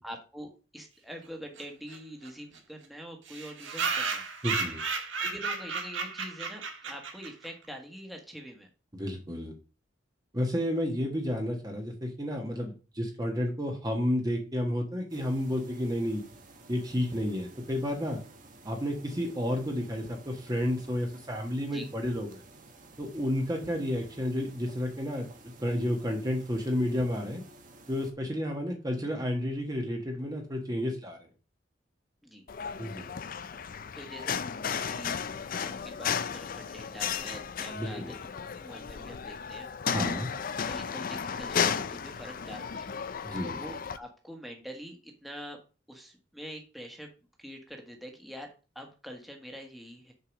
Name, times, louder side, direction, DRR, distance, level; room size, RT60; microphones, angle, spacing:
voice 1, 0.0-4.2 5.2-8.7 21.6-21.9 32.2-32.4 33.9-35.2 35.5-38.1 38.6-39.7 40.6-43.3 43.5-45.6 45.9-47.1 47.4-48.5 48.7-50.1, equal, ahead, 1 dB, 1.5 m, -45 dB
sound 1, 1.6-1.7 1.9-2.0 2.2-2.3 2.5-2.6 3.3-7.5, right 5 dB, 80° right, 1.5 m, -33 dB
voice 2, 4.4-4.8 8.9-9.5 10.3-16.2 16.7-18.2 18.6-22.4 23.0-25.3 25.6-27.4 27.9-31.3 32.8-33.1 37.7-38.1 39.9-40.3 43.2-43.6, equal, 20° right, 2 dB, 1.3 m, -31 dB
sound 2, 15.1-28.1, right 2 dB, 45° right, 1.4 m, -53 dB
sound 3, 32.5-44.0, left 7 dB, 50° left, 0.5 m, -34 dB
6.8 x 4.8 x 6.1 m, 0.34 s
head